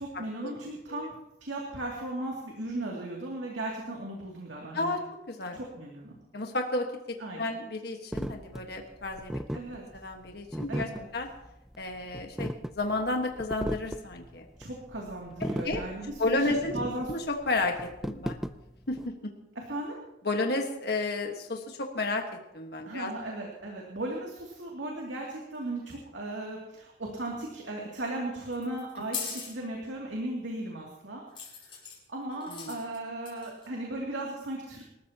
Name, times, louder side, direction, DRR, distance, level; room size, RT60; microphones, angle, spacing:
voice 1, 0.0-5.0 5.5-6.2 7.2-7.4 9.5-9.8 10.7-11.1 14.6-17.1 19.6-19.9 22.8-31.2 31.6-31.8 32.1-34.9, right 1 dB, 90° right, -2 dB, 2.6 m, -37 dB
voice 2, 5.3-5.6 6.3-9.4 9.9-10.9 11.1-11.3 11.8-14.5 15.6-15.8 16.2-16.8 17.1-17.7 18.0-18.4 18.9-19.3 20.2-22.2 22.5-23.1 32.5-32.8, left 2 dB, 60° left, 3 dB, 1.5 m, -32 dB
sound 1, 8.1-19.1, equal, 5° right, 0.4 m, -37 dB
sound 2, 28.5-29.5 31.3-32.0 32.4-33.0 33.2-33.7, left 6 dB, 30° left, 6.1 m, -38 dB
27.0 x 13.5 x 2.9 m, 0.90 s
head